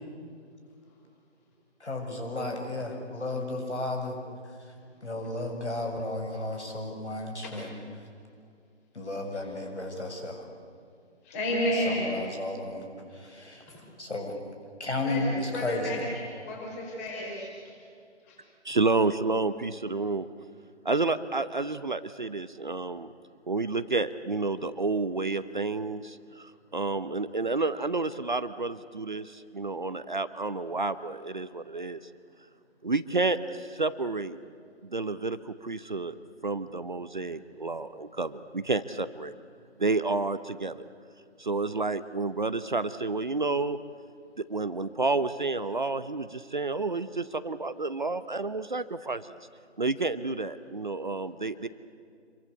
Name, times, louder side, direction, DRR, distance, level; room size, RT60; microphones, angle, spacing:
voice 1, 1.8-4.2 5.0-7.7 8.9-10.4 11.9-12.9 13.1-13.6 14.0-14.4 14.8-16.0, left 2 dB, 70° left, 3 dB, 7.3 m, -33 dB
voice 2, 11.2-12.2 13.7-13.8 15.0-15.3 15.5-17.8 18.3-18.4, equal, 10° left, -2 dB, 4.6 m, -32 dB
voice 3, 18.6-20.3 20.8-23.1 23.5-32.0 32.8-34.4 34.8-36.2 36.4-39.3 39.8-40.9 41.4-43.8 44.4-49.4 49.8-51.7, right 3 dB, 40° right, 13 dB, 0.9 m, -30 dB
27.5 x 23.0 x 8.2 m, 2.3 s
figure-of-eight pair, 165°, 35 cm